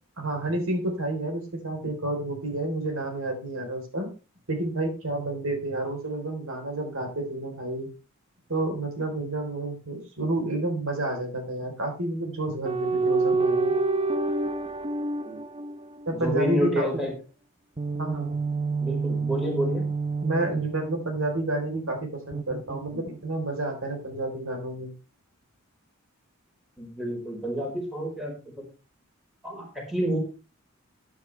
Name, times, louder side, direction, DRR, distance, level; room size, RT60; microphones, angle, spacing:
voice 1, 0.2-4.1 4.5-7.9 8.5-13.7 16.1-16.9 18.0-18.3 20.2-24.9, right 2 dB, 75° right, 4 dB, 3.9 m, -30 dB
sound 1, 12.7-16.3 17.8-21.5 22.3-23.5, right 3 dB, 25° right, 0.6 m, -28 dB
voice 2, 16.1-17.1 18.8-19.9 26.8-28.6 29.4-30.2, equal, ahead, 0 dB, 4.6 m, -29 dB
15.0 x 9.3 x 3.4 m, 0.31 s
head